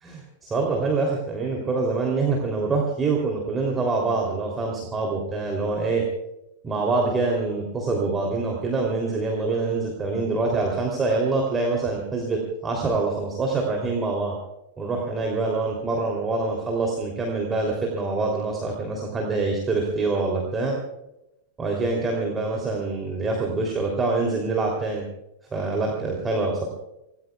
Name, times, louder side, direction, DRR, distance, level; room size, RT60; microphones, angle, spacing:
voice 1, 0.0-6.1 6.6-14.4 14.8-20.8 21.6-25.0 25.5-26.7, right 3 dB, 15° right, 0 dB, 3.3 m, -25 dB
27.0 x 18.5 x 2.4 m, 0.90 s
figure-of-eight pair, 90°, 0 cm